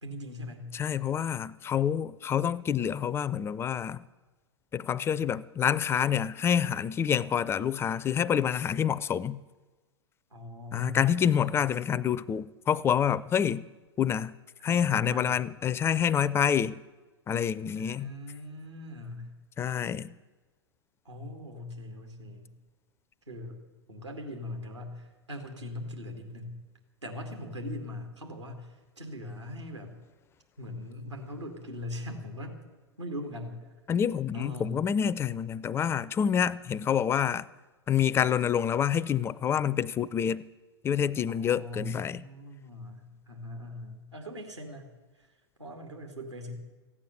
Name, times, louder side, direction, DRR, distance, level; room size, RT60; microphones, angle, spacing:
voice 1, 0.0-0.7 10.3-11.7 14.6-15.4 17.7-19.3 21.0-22.5 23.3-23.6 23.9-26.6 27.0-30.0 30.6-32.6 33.0-33.7 34.3-34.8 41.3-44.9 45.1-45.3 45.6-46.5, left 1 dB, 90° right, 2.6 m, -40 dB
voice 2, 0.7-4.0 4.7-9.4 10.7-13.7 14.0-14.3 14.6-16.7 17.3-18.1 19.6-20.1 33.9-37.5 37.9-40.5 40.8-42.2, left 8 dB, 15° left, 0.4 m, -27 dB
15.0 x 8.7 x 9.5 m
figure-of-eight pair, 100°, 14 cm